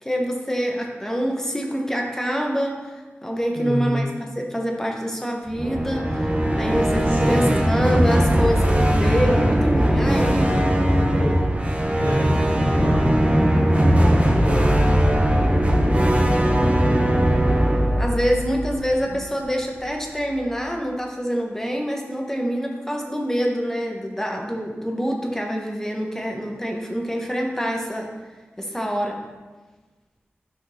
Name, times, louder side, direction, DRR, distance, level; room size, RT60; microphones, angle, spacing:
voice 1, 0.0-4.0 4.4-10.6 18.0-28.1 28.6-29.2, equal, 10° left, 0 dB, 1.1 m, -26 dB
voice 2, 3.5-4.0 7.1-7.4 11.1-11.4 12.0-12.3 12.6-13.1 14.0-14.8 19.0-19.2, equal, 90° right, -7 dB, 2.0 m, -27 dB
sound 1, 5.5-19.5, equal, 30° right, 0.8 m, -19 dB
8.4 x 5.9 x 2.8 m, 1.3 s
cardioid pair, 45°, 4 cm